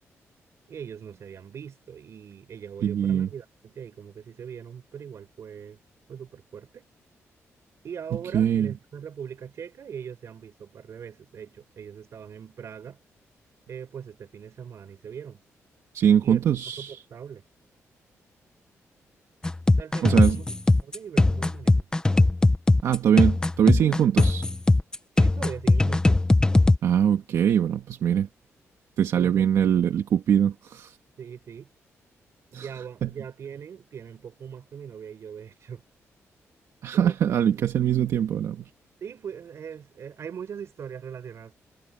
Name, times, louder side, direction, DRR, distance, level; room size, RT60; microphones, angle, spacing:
voice 1, 0.7-5.8 6.1-6.8 7.8-13.0 13.7-15.4 16.2-16.4 16.8-17.4 19.7-20.5 20.8-21.9 25.1-26.2 29.1-29.8 31.2-31.7 32.5-35.8 36.9-37.7 39.0-41.5, right 7 dB, 60° right, 4.8 m, -40 dB
voice 2, 2.8-3.3 8.3-8.7 15.9-17.0 20.0-20.4 22.8-24.5 26.8-28.3 29.0-30.9 32.5-32.7 33.0-33.1 36.8-38.6, right 9 dB, 80° right, 1.7 m, -22 dB
sound 1, 19.4-26.8, left 2 dB, 15° left, 1.2 m, -20 dB
cardioid pair, 105°, 5 cm